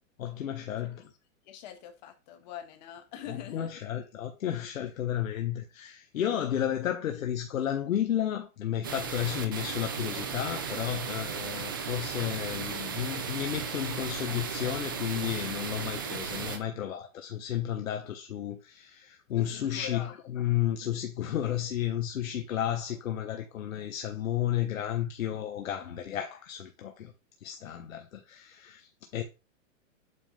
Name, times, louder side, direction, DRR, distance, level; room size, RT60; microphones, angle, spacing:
voice 1, 0.2-1.1 3.3-27.1 27.4-29.2, left 11 dB, 90° left, 1.3 m, -32 dB
voice 2, 1.4-3.7 19.3-20.1, left 9 dB, 35° left, 1.5 m, -43 dB
sound 1, 8.8-16.6, right 6 dB, 20° right, 0.4 m, -35 dB
8.2 x 3.8 x 5.5 m
supercardioid pair, 170°, 39 cm